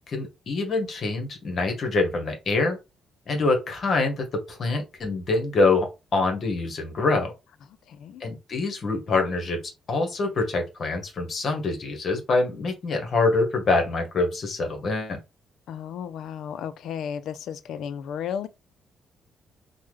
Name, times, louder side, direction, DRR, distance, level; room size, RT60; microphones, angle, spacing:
voice 1, 0.1-2.8 3.3-7.3 8.2-9.6 9.9-15.2, left 3 dB, 50° left, 1.0 m, -25 dB
voice 2, 7.9-8.2 15.7-18.5, left 8 dB, 75° left, 0.3 m, -33 dB
3.4 x 2.1 x 3.1 m
cardioid pair, 90°, 0 cm